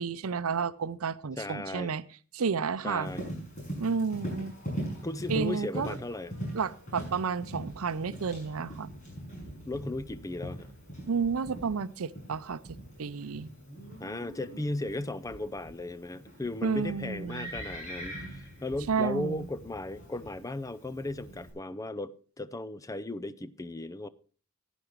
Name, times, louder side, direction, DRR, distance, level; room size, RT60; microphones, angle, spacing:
voice 1, 0.0-2.0 2.3-3.1 3.8-4.5 5.3-6.0 6.5-8.9 11.1-12.6 13.0-13.5 16.6-17.5 18.9-19.4, right 5 dB, 80° right, 0.6 m, -31 dB
voice 2, 1.4-1.9 2.8-3.2 5.0-6.3 9.6-10.7 14.0-24.1, left 2 dB, 15° left, 0.5 m, -36 dB
Livestock farm animals working animals, 3.0-21.5, right 1 dB, 35° left, 5.9 m, -42 dB
15.5 x 10.0 x 3.1 m
head